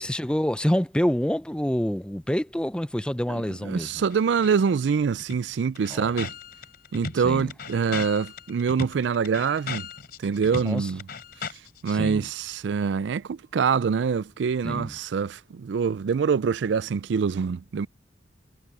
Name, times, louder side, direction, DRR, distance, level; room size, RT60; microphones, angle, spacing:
voice 1, 0.0-3.9 5.9-6.1 7.2-7.5 10.6-10.9 11.9-12.3 14.6-14.9, equal, 5° left, 0.6 m, -27 dB
voice 2, 3.3-6.3 6.9-9.9 10.2-11.1 11.5-17.9, right 6 dB, 80° right, 0.4 m, -25 dB
sound 1, 4.1-4.6 4.9-5.0 5.2-11.9, left 4 dB, 65° left, 3.4 m, -37 dB
head